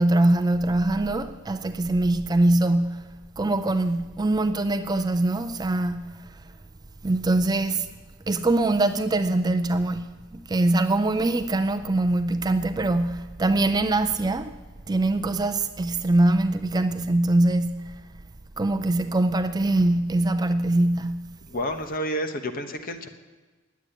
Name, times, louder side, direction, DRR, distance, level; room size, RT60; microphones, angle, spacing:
voice 1, 0.0-3.1 3.4-6.1 7.0-7.9 8.3-14.5 14.9-17.9 18.6-21.3, right 2 dB, 20° right, 0.4 m, -23 dB
voice 2, 21.5-23.1, equal, 45° left, 1.0 m, -30 dB
10.5 x 8.3 x 9.9 m
head